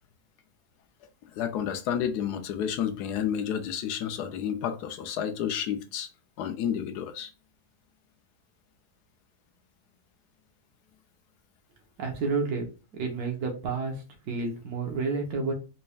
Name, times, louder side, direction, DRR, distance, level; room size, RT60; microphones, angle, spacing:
voice 1, 1.4-6.1 6.4-7.3, left 9 dB, 85° left, 1.1 m, -30 dB
voice 2, 12.0-12.7 12.9-15.5, right 4 dB, 70° right, 1.4 m, -30 dB
4.1 x 3.3 x 2.3 m
omnidirectional pair, 1.7 m